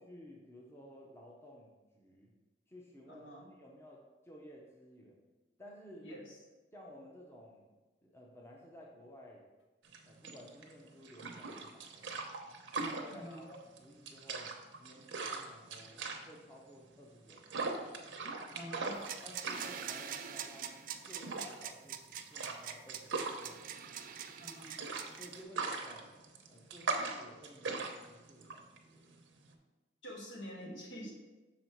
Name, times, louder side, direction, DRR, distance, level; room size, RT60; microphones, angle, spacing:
voice 1, 0.0-2.3 2.7-5.2 5.6-6.1 6.7-7.7 8.0-9.4 10.0-12.3 12.8-17.8 19.2-20.8 21.1-23.7 25.2-26.2 26.5-29.1, equal, 15° left, -2 dB, 0.7 m, -55 dB
voice 2, 3.1-3.5 6.0-6.4 13.1-13.4 18.5-19.0 24.4-24.8 30.0-31.1, equal, 80° left, -3 dB, 1.7 m, -47 dB
sound 1, 9.8-29.5, right 4 dB, 85° right, 0.7 m, -41 dB
sound 2, 18.9-25.4, right 9 dB, 45° right, 0.3 m, -44 dB
6.2 x 4.2 x 4.5 m, 1.2 s
head